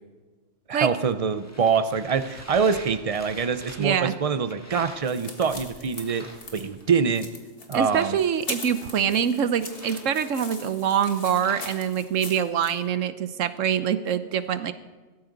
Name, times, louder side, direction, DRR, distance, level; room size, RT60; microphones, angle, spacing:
voice 1, 0.7-7.3 7.7-8.2, right 6 dB, 35° right, 11 dB, 0.6 m, -25 dB
sound 1, 1.1-5.6 5.9-6.9 7.7-8.7 9.3-12.0, equal, 10° left, 1.9 m, -46 dB
voice 2, 3.8-4.1 7.7-14.7, right 8 dB, 80° right, 12 dB, 1.2 m, -25 dB
sound 2, 4.7-12.8, left 3 dB, 50° left, 2.0 m, -41 dB
17.0 x 14.0 x 4.0 m, 1.3 s
omnidirectional pair, 1.3 m